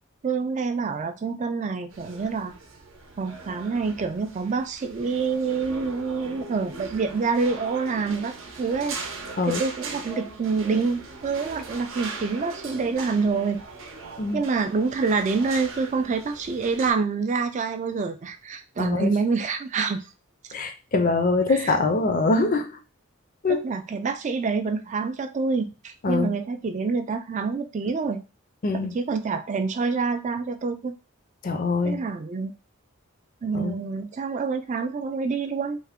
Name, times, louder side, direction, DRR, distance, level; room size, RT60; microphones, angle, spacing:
voice 1, 0.2-2.5 3.2-9.0 9.4-13.6 14.3-20.1 21.5-21.8 23.5-28.2 28.7-30.9 31.8-32.5 33.4-35.8, right 4 dB, 35° right, 8 dB, 0.3 m, -27 dB
sound 1, 1.9-16.9, right 3 dB, 70° right, 0.7 m, -40 dB
voice 2, 18.8-19.1 20.5-22.8 23.4-23.7 26.0-26.3 28.6-28.9 31.4-32.0 33.5-33.8, left 3 dB, 40° left, 8 dB, 0.4 m, -23 dB
3.3 x 2.1 x 3.5 m, 0.30 s
head